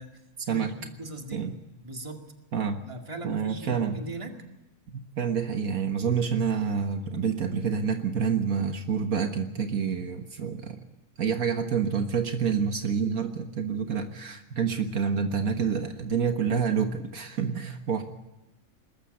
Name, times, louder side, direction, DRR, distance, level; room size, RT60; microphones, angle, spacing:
voice 1, 0.0-1.5 1.8-2.2 2.8-4.4, right 2 dB, 20° right, 4 dB, 2.2 m, -39 dB
voice 2, 3.2-4.0 5.2-10.8 11.2-18.0, right 6 dB, 70° right, 6 dB, 1.8 m, -28 dB
21.0 x 14.0 x 9.6 m, 0.99 s
omnidirectional pair, 1.5 m